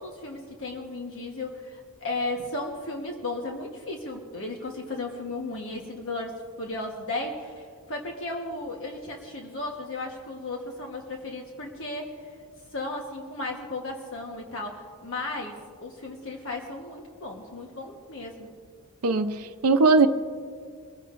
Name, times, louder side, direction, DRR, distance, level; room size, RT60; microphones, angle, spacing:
voice 1, 0.0-12.3 12.7-15.6 15.8-18.5, left 2 dB, 60° left, 1 dB, 1.3 m, -35 dB
voice 2, 19.0-20.1, right 3 dB, 80° right, 7 dB, 0.7 m, -20 dB
23.5 x 16.0 x 2.6 m, 2.1 s
head